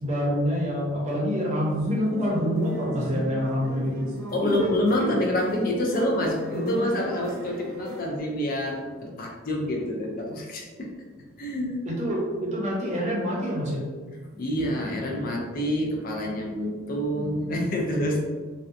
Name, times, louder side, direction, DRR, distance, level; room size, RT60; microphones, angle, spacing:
voice 1, 0.0-4.1 4.4-4.7 4.9-5.2 5.9-6.2 6.5-6.9 11.9-13.8, equal, 30° right, -4 dB, 0.6 m, -27 dB
sound 1, 1.5-8.2, equal, 80° right, 0.7 m, -39 dB
voice 2, 4.3-10.9 11.4-11.8 14.3-18.2, left 1 dB, 40° left, 0 dB, 0.4 m, -27 dB
2.6 x 2.1 x 2.5 m, 1.4 s
head